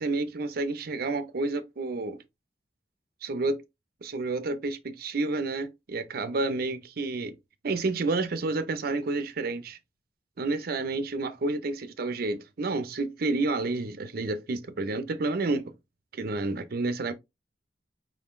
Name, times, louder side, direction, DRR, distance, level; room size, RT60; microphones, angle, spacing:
voice 1, 0.0-2.2 3.2-3.6 4.0-7.3 7.6-9.8 10.4-15.7 16.1-17.1, right 3 dB, 60° right, 0.5 m, -30 dB
5.0 x 3.6 x 2.5 m
head